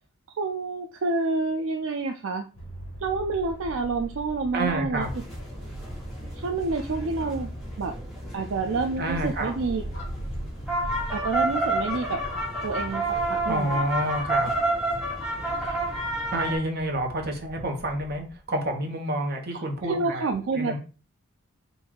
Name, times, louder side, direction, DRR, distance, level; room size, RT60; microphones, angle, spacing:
voice 1, 0.4-2.5 3.0-5.0 6.3-7.5 7.8-7.9 8.3-9.8 11.1-12.2 12.6-14.1 15.6-15.8 19.5-19.6 19.9-20.8, right 3 dB, 65° right, 4 dB, 0.4 m, -28 dB
sound 1, 2.5-18.4, equal, 65° left, 1.3 m, -41 dB
voice 2, 4.5-5.1 9.0-9.5 13.4-14.5 16.3-20.3 20.5-20.8, right 1 dB, 45° right, 2 dB, 1.0 m, -28 dB
sound 2, 5.0-16.6, right 2 dB, ahead, 1.4 m, -30 dB
sound 3, 9.9-10.4 11.1-11.5 12.2-12.6 13.2-13.6 14.3-15.8, left 2 dB, 50° left, 1.0 m, -44 dB
3.9 x 2.6 x 4.6 m, 0.35 s
head